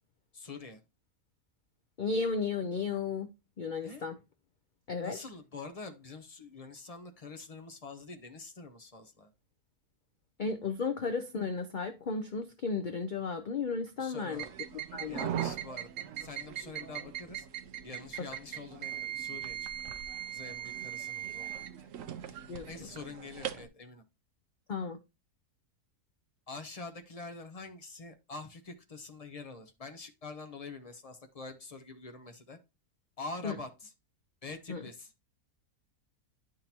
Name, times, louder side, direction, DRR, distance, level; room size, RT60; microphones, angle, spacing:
voice 1, 0.3-0.8 3.8-4.0 5.0-9.3 14.0-14.6 15.1-17.5 17.8-19.7 20.3-21.9 22.3-24.0 26.5-32.6 33.2-33.9 34.4-35.1, left 3 dB, 35° left, 0.6 m, -46 dB
voice 2, 2.0-3.3 3.6-4.2 4.9-5.2 10.4-14.4 14.9-15.3 22.5-22.7 24.7-25.0 33.4-33.6 34.7-34.8, left 4 dB, 85° left, 0.4 m, -34 dB
sound 1, 14.3-23.7, right 11 dB, 65° right, 0.9 m, -39 dB
10.5 x 3.8 x 2.8 m
omnidirectional pair, 1.6 m